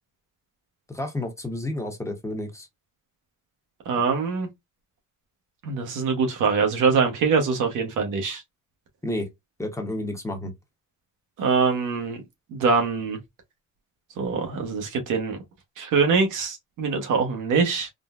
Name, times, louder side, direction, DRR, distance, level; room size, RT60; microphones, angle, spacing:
voice 1, 0.9-2.7 9.0-9.3 9.6-10.5, left 1 dB, 10° left, 0.9 m, -30 dB
voice 2, 3.8-4.5 5.6-8.4 11.4-12.2 12.5-13.2 14.2-15.4 15.8-17.9, right 5 dB, 85° right, 1.0 m, -23 dB
3.7 x 2.1 x 2.4 m
cardioid pair, 90°, 30 cm